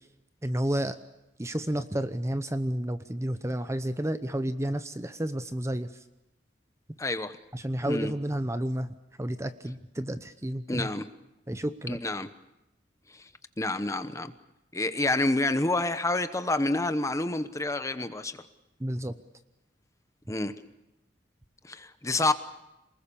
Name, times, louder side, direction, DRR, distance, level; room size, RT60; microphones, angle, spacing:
voice 1, 0.4-1.0 1.4-6.0 7.5-10.9 11.5-12.0 18.8-19.2, right 1 dB, 15° right, 0.8 m, -31 dB
voice 2, 7.0-7.4 7.9-8.1 10.7-11.1 11.9-12.3 13.1-13.2 13.6-14.3 14.7-18.4 20.3-20.5 21.6-22.3, left 2 dB, 15° left, 1.0 m, -28 dB
27.5 x 20.5 x 7.0 m
head